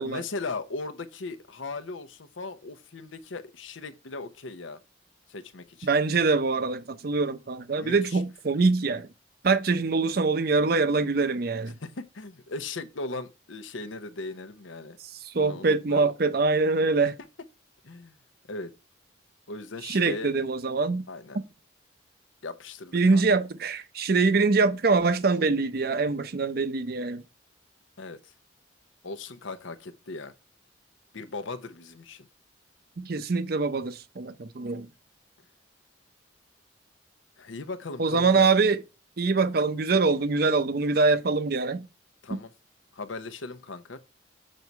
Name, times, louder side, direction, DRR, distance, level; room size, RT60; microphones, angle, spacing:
voice 1, 0.0-4.8 5.3-5.9 7.8-8.2 11.8-15.0 15.3-16.1 17.8-18.2 18.5-18.7 19.5-20.3 21.1-21.4 22.4-23.2 28.0-28.3 29.0-30.3 31.1-32.3 37.4-38.5 42.2-42.5 42.9-44.0, left 3 dB, 80° left, 0.8 m, -38 dB
voice 2, 5.8-9.1 9.4-11.7 15.2-17.1 19.8-21.0 22.9-27.2 33.0-34.9 38.0-38.8 39.2-41.8, right 4 dB, 50° right, 0.6 m, -24 dB
6.4 x 4.1 x 4.5 m
head